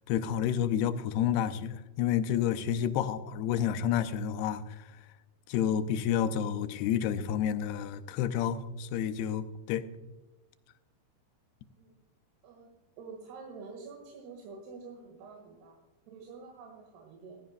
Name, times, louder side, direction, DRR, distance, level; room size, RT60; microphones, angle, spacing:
voice 1, 0.1-4.8 5.5-9.8, left 9 dB, 85° left, 2.7 m, -30 dB
voice 2, 12.4-15.8 16.1-17.4, right 4 dB, 80° right, 3.6 m, -48 dB
16.0 x 14.5 x 2.3 m
omnidirectional pair, 4.6 m